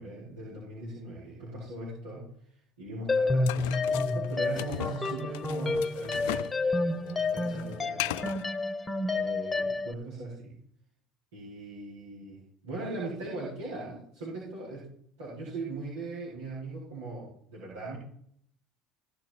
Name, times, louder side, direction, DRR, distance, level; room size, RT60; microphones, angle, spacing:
voice 1, 0.0-2.3 2.8-8.4 9.0-10.6 11.3-14.9 15.2-18.0, right 2 dB, 90° right, -8 dB, 5.2 m, -40 dB
sound 1, 3.1-9.9, left 3 dB, 20° left, 1.0 m, -29 dB
sound 2, 3.5-6.6 6.9-8.5, left 15 dB, 80° left, 0.3 m, -37 dB
16.0 x 6.4 x 4.5 m, 0.63 s
hypercardioid pair, 75°, 0 cm